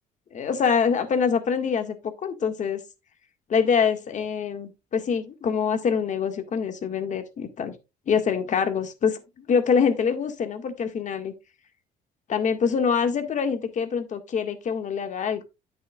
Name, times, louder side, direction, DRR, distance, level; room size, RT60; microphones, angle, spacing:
voice 1, 0.3-2.0 2.2-2.8 3.5-7.7 8.1-11.3 12.3-15.5, left 6 dB, 45° left, 1.8 m, -25 dB
9.8 x 8.3 x 2.4 m
cardioid pair, 110°, 17 cm